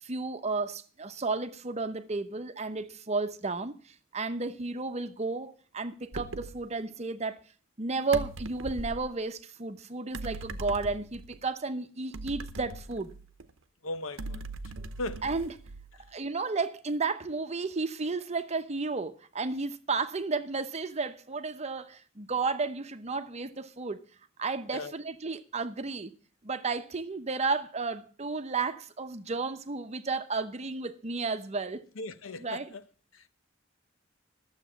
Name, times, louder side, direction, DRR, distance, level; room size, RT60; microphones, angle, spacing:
voice 1, 0.0-3.7 4.1-7.4 7.8-13.1 15.2-15.5 16.1-24.0 24.4-26.1 26.4-31.9 32.4-32.7, right 4 dB, 35° right, 0.8 m, -33 dB
sound 1, 6.1-6.6 8.1-9.1 10.1-11.4 12.1-13.5 14.2-16.1, right 2 dB, 80° right, 0.9 m, -40 dB
voice 2, 13.8-14.4 15.0-15.3 24.7-24.9 32.0-32.8, left 2 dB, 90° left, 0.9 m, -37 dB
12.0 x 7.3 x 7.2 m
head